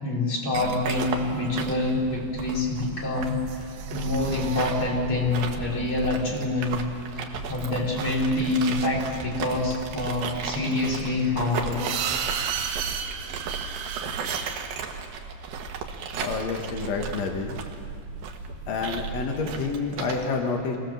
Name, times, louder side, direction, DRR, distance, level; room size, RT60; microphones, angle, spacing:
voice 1, 0.0-6.8 7.1-11.9, left 2 dB, 30° left, -2 dB, 3.6 m, -26 dB
sound 1, 0.5-20.2, right 5 dB, 65° right, 2.5 m, -35 dB
sound 2, 0.9-1.6 3.4-6.3 10.7-15.0 18.7-18.8, right 8 dB, 80° right, 3.7 m, -34 dB
voice 2, 16.2-17.6 18.7-20.8, left 4 dB, 85° left, 2 dB, 1.5 m, -28 dB
24.5 x 17.5 x 7.2 m, 2.2 s
omnidirectional pair, 5.5 m